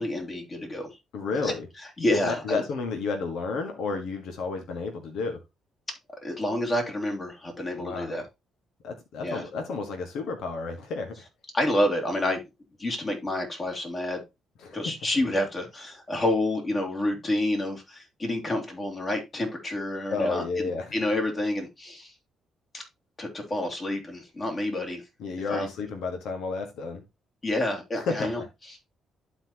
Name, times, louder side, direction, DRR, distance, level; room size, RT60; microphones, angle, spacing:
voice 1, 0.0-1.0 1.4-1.5 2.0-2.6 6.2-8.2 9.2-9.4 11.5-12.4 12.8-14.2 14.7-22.1 22.7-22.8 23.2-25.0 25.5-25.7 27.4-28.4, left 1 dB, 35° left, 2 dB, 2.6 m, -28 dB
voice 2, 1.1-1.7 2.2-5.4 7.8-8.2 8.8-11.2 14.6-14.8 20.1-20.9 25.2-27.0 27.9-28.5, left 4 dB, 80° left, 4 dB, 1.5 m, -31 dB
11.5 x 4.3 x 2.9 m, 0.23 s
cardioid pair, 90°, 0 cm